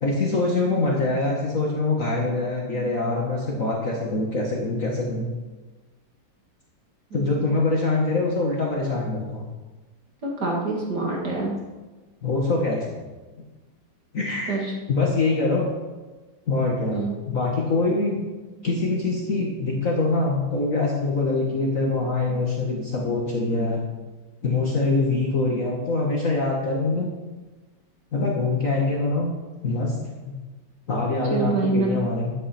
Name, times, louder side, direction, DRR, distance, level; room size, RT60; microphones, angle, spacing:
voice 1, 0.0-5.3 7.1-9.4 12.2-12.8 14.1-14.6 14.9-15.7 16.5-18.2 18.6-23.8 24.4-27.1 28.1-29.3 29.6-29.9 30.2-30.3 30.9-32.3, left 3 dB, 45° left, -2 dB, 1.9 m, -24 dB
voice 2, 10.2-11.6 14.5-14.7 16.9-17.1 31.3-32.1, right 3 dB, 60° right, -2 dB, 2.6 m, -25 dB
13.0 x 9.4 x 4.4 m, 1.2 s
omnidirectional pair, 2.0 m